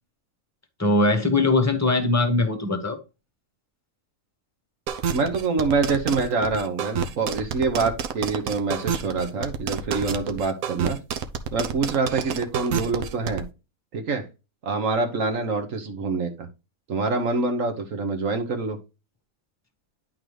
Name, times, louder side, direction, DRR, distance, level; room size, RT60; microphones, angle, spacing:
voice 1, 0.8-3.0, left 2 dB, 15° left, 1.0 m, -21 dB
sound 1, 4.9-13.4, right 7 dB, 90° right, 1.3 m, -28 dB
voice 2, 5.1-11.0 11.5-13.4 13.9-14.2 14.6-16.5 16.9-18.8, right 4 dB, 65° right, 1.4 m, -25 dB
10.5 x 3.9 x 3.2 m
omnidirectional pair, 1.5 m